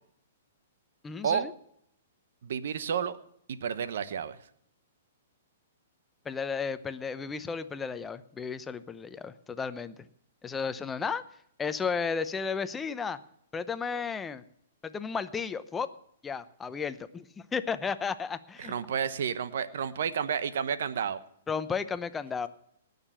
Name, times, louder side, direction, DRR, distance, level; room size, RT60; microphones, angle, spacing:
voice 1, 1.0-1.5 6.2-10.1 10.4-11.2 11.6-13.2 13.5-14.4 14.8-15.9 16.2-18.7 21.5-22.5, left 5 dB, 15° left, 12 dB, 0.7 m, -33 dB
voice 2, 2.4-3.2 3.5-4.4 18.6-21.2, right 7 dB, 70° right, 13 dB, 1.0 m, -31 dB
18.5 x 6.7 x 7.3 m, 0.70 s
hypercardioid pair, 130°, 0 cm